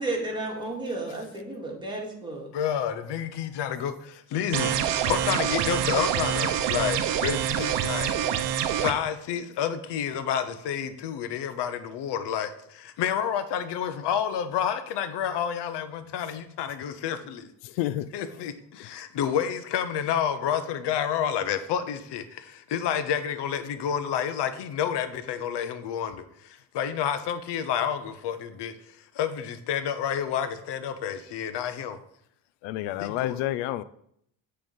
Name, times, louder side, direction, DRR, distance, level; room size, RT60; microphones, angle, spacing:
voice 1, 0.0-2.5, right 2 dB, 10° right, 2.2 m, -32 dB
voice 2, 2.5-4.7 5.1-8.1 8.8-17.5 18.1-26.2 26.7-28.7 29.2-32.0 33.0-33.4, left 8 dB, 60° left, 0.9 m, -29 dB
sound 1, 4.5-8.9, right 10 dB, 60° right, 0.8 m, -26 dB
voice 3, 17.6-18.0 32.6-33.8, left 14 dB, 80° left, 0.5 m, -29 dB
7.6 x 3.4 x 5.3 m
supercardioid pair, 90°, 47 cm